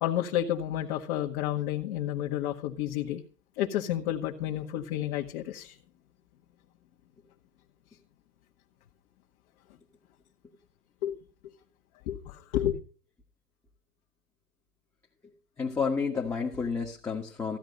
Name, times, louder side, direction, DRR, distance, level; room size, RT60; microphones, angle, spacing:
voice 1, 0.0-3.2 3.6-5.7 11.0-11.2 12.1-12.8, left 12 dB, 35° left, 1 dB, 1.7 m, -30 dB
voice 2, 15.6-17.6, left 5 dB, 5° left, -1 dB, 1.5 m, -30 dB
15.5 x 10.5 x 5.3 m, 0.39 s
hypercardioid pair, 130°, 47 cm